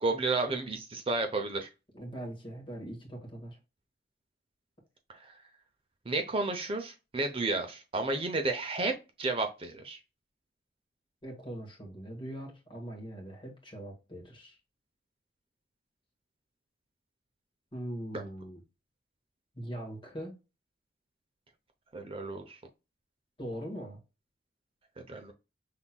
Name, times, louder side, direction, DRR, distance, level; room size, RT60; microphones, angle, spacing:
voice 1, 0.0-1.7 5.1-5.3 6.1-8.9 9.2-10.0 18.1-18.2 21.9-22.6 25.1-25.3, right 3 dB, 30° right, 0.7 m, -32 dB
voice 2, 1.9-3.6 11.2-14.6 17.7-18.6 19.5-20.4 23.4-24.0, right 1 dB, 30° left, 1.6 m, -41 dB
5.8 x 3.4 x 2.2 m
head